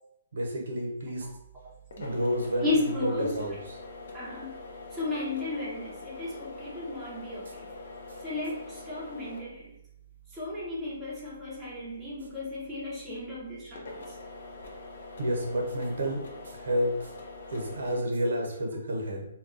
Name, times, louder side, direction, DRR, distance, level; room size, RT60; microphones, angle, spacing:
voice 1, 0.3-1.3 1.9-3.6 15.2-17.1 17.5-19.3, equal, 70° right, 0 dB, 0.8 m, -30 dB
sound 1, 1.2-18.0, left 2 dB, 60° left, 0.6 m, -45 dB
voice 2, 2.6-3.4 4.1-4.6 4.9-7.7 8.2-9.7 10.3-14.0, left 2 dB, ahead, -10 dB, 0.6 m, -34 dB
2.2 x 2.2 x 3.7 m, 0.78 s
hypercardioid pair, 170°, 0 cm